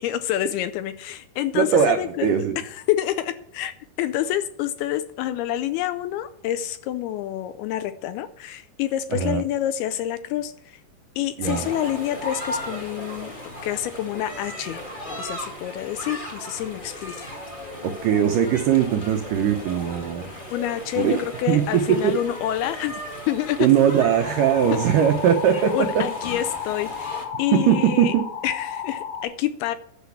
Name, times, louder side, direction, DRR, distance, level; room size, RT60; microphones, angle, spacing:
voice 1, 0.0-10.8 11.2-14.8 15.2-17.3 20.5-23.0 23.3-23.7 24.7-24.8 25.7-28.2 28.4-29.8, left 12 dB, 80° left, 12 dB, 2.4 m, -28 dB
voice 2, 1.5-2.6 9.1-9.4 11.4-11.7 17.8-20.3 20.9-21.1 21.5-21.6 21.9-22.1 23.6-26.0 27.5-28.3, right 9 dB, 85° right, 6 dB, 1.8 m, -20 dB
sound 1, 11.4-27.2, equal, 40° left, 0.7 m, -36 dB
sound 2, 24.2-29.2, left 7 dB, 65° left, 2.1 m, -33 dB
10.0 x 6.0 x 8.3 m, 0.66 s
omnidirectional pair, 4.9 m